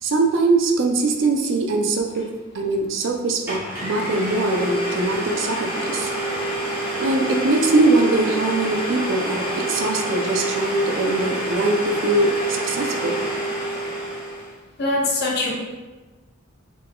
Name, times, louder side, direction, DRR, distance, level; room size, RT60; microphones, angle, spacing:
voice 1, 0.0-2.3 2.5-6.1 7.0-13.2, right 2 dB, 65° right, 2 dB, 0.4 m, -22 dB
Domestic sounds home sounds, 3.0-3.1 3.5-14.5, right 1 dB, 10° right, 1.0 m, -27 dB
voice 2, 14.8-15.5, left 2 dB, 50° left, -3 dB, 0.7 m, -23 dB
3.7 x 3.7 x 2.2 m, 1.2 s
head